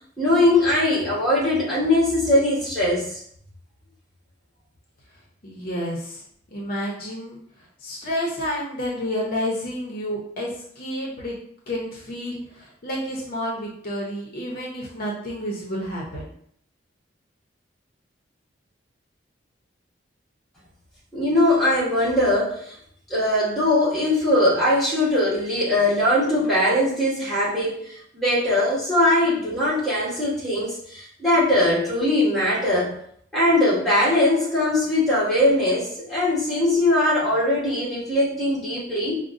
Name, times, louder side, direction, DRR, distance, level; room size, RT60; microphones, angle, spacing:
voice 1, 0.2-3.2 21.1-22.7 23.1-32.9 33.3-39.2, left 1 dB, ahead, -8 dB, 1.2 m, -21 dB
voice 2, 5.4-6.2 6.5-7.4 7.8-10.5 10.8-11.4 11.7-16.3, equal, 50° left, -3 dB, 0.7 m, -30 dB
5.0 x 2.1 x 2.5 m, 0.66 s
head